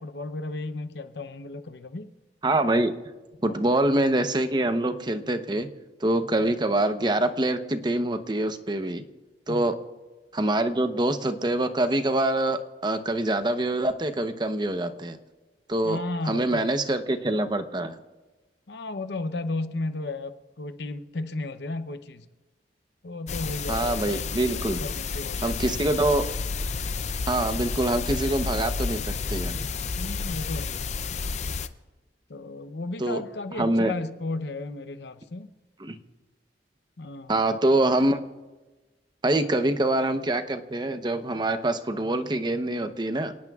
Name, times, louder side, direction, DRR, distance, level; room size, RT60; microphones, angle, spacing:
voice 1, 0.0-2.1 3.4-3.7 9.5-9.7 15.8-16.6 18.7-22.3 23.0-24.4 24.8-25.8 28.2-28.3 30.0-30.9 32.3-35.5 37.0-37.3, left 2 dB, 70° left, 11 dB, 0.8 m, -34 dB
voice 2, 2.4-2.9 3.4-5.7 6.0-9.0 9.5-9.8 10.3-15.2 15.7-16.0 16.3-18.0 23.7-24.8 25.4-26.2 27.3-29.6 33.0-33.2 33.6-33.9 35.8-36.0 37.3-38.2 39.2-43.3, right 1 dB, 25° right, 8 dB, 0.8 m, -25 dB
sound 1, 23.3-31.7, left 4 dB, 40° left, 0.5 m, -31 dB
29.0 x 18.0 x 2.4 m, 1.2 s
head